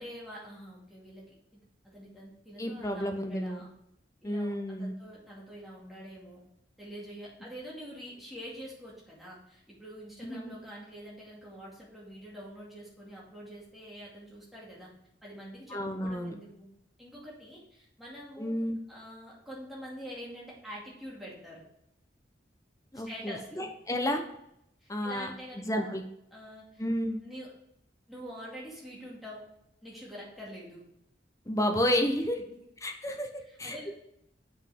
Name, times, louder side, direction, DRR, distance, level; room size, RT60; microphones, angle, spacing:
voice 1, 0.0-3.7 4.2-6.4 6.8-14.9 15.2-16.7 17.0-18.6 18.9-21.6 22.9-23.6 24.8-26.0 26.3-26.8 27.2-27.5 28.1-29.4 29.8-30.8 33.4-33.9, equal, ahead, -6 dB, 2.3 m, -46 dB
voice 2, 2.6-3.6 4.2-4.9 10.2-10.6 15.7-16.3 18.4-18.8 22.9-24.2 24.9-25.3 25.6-26.0 26.8-27.2 31.5-32.4 32.8-33.3 33.6-33.9, equal, 15° left, 4 dB, 0.7 m, -31 dB
7.2 x 5.7 x 3.6 m, 0.79 s
head